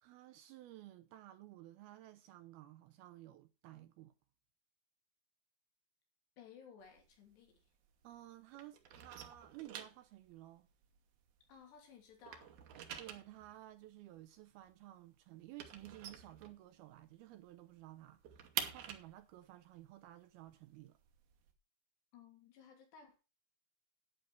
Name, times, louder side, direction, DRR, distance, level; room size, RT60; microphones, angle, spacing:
voice 1, 0.0-4.1 8.0-10.7 12.9-21.0, right 15 dB, 80° right, 2.3 m, -55 dB
voice 2, 6.4-7.6 11.5-12.5 22.1-23.2, left 6 dB, 75° left, 4.9 m, -58 dB
sound 1, 6.8-8.3 8.5-11.8 12.0-17.1 17.4-17.5 17.8-21.5, right 9 dB, 65° right, 2.1 m, -47 dB
10.5 x 9.4 x 4.6 m
omnidirectional pair, 4.9 m